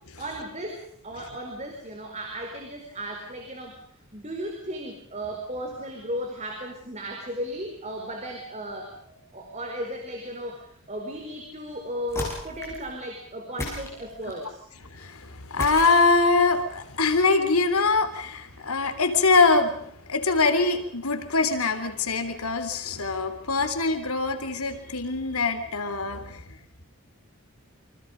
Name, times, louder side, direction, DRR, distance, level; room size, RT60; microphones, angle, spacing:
voice 1, 0.2-3.8 4.1-14.6, equal, 30° right, 2 dB, 4.7 m, -35 dB
sound 1, 12.1-12.9 13.6-14.5 15.6-16.5, left 1 dB, 10° left, 7.3 m, -35 dB
voice 2, 14.9-26.4, left 3 dB, 80° left, 9 dB, 3.4 m, -23 dB
28.5 x 25.5 x 5.3 m, 0.64 s
head